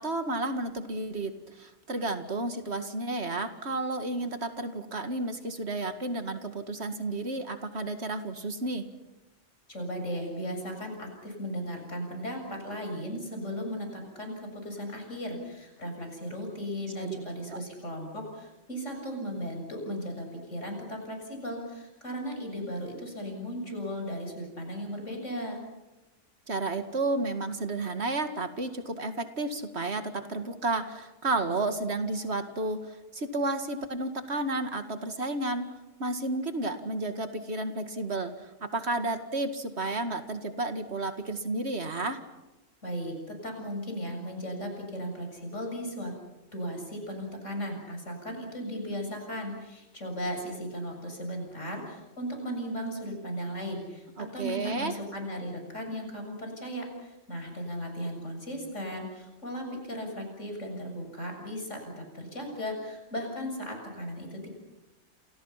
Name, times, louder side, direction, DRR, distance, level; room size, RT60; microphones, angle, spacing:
voice 1, 0.0-8.9 17.0-17.2 17.5-17.6 26.5-35.7 36.0-42.2 54.2-55.0, right 2 dB, 60° right, 8 dB, 2.3 m, -32 dB
voice 2, 9.7-25.6 42.8-43.2 43.4-46.1 46.5-54.1 54.3-64.5, equal, 90° left, 3 dB, 7.6 m, -36 dB
28.5 x 28.5 x 5.8 m, 1.0 s
omnidirectional pair, 1.2 m